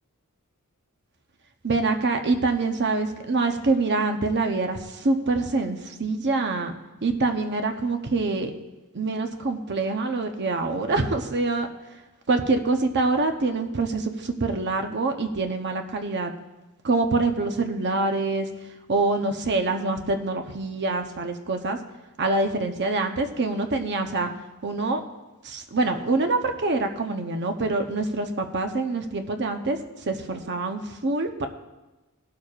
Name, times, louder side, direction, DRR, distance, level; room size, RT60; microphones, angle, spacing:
voice 1, 1.6-6.8 7.0-8.5 8.9-11.7 12.3-16.3 16.8-18.5 18.9-21.8 22.2-24.3 24.6-25.0 25.4-29.8 30.0-31.5, right 3 dB, 50° right, 5 dB, 0.8 m, -25 dB
18.0 x 11.5 x 2.4 m, 1.1 s
head